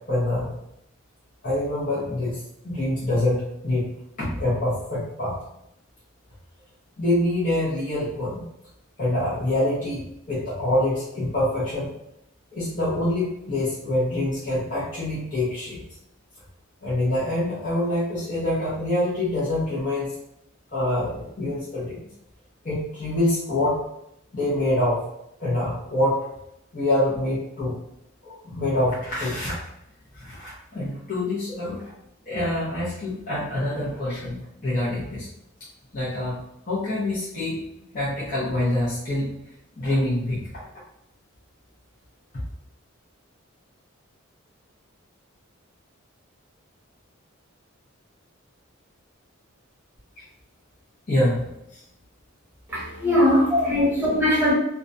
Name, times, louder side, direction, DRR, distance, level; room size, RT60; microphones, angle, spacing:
voice 1, 0.1-0.5 1.4-3.9 4.2-5.4 7.0-8.4 9.0-10.0 10.3-11.9 12.5-15.8 16.8-20.1 20.7-22.0 22.6-23.8 24.3-25.1 25.4-26.2 26.7-27.7 28.2-29.6 30.1-31.9 32.3-35.3 35.9-36.4 36.7-37.6 37.9-39.3 39.8-40.4 50.2-50.3 51.1-51.8 53.5-53.6, left 1 dB, 40° left, -9 dB, 0.7 m, -25 dB
voice 2, 52.7-54.5, equal, 10° right, -8 dB, 0.9 m, -21 dB
2.4 x 2.1 x 2.6 m, 0.79 s
head